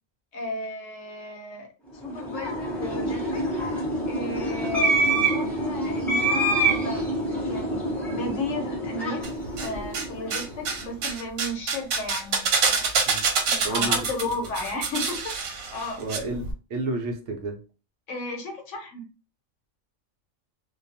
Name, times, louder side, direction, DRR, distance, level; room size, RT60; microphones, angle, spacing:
voice 1, 0.3-3.4 4.1-7.1 7.4-9.3 9.6-12.9 13.5-15.4 15.7-16.0 18.1-19.0, left 2 dB, 65° left, 3 dB, 1.0 m, -34 dB
sound 1, 2.0-10.5, right 1 dB, ahead, 0.7 m, -26 dB
sound 2, 9.2-10.1 10.3-16.2 16.4-16.5, right 5 dB, 85° right, 1.1 m, -26 dB
voice 2, 13.6-14.0 16.0-17.6, right 2 dB, 65° right, 3 dB, 0.9 m, -31 dB
2.5 x 2.2 x 2.6 m, 0.33 s
omnidirectional pair, 1.4 m